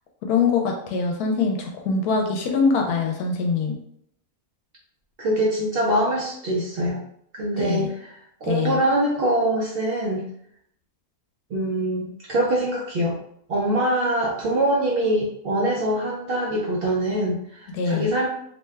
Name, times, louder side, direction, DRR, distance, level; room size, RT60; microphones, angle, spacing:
voice 1, 0.2-3.7 7.6-7.9 8.4-8.8 17.7-18.1, left 5 dB, 80° left, 2 dB, 1.1 m, -23 dB
voice 2, 5.2-7.0 7.3-10.3 11.5-13.2 13.5-18.3, right 1 dB, 75° right, -3 dB, 0.5 m, -24 dB
2.9 x 2.1 x 3.3 m, 0.71 s
omnidirectional pair, 1.6 m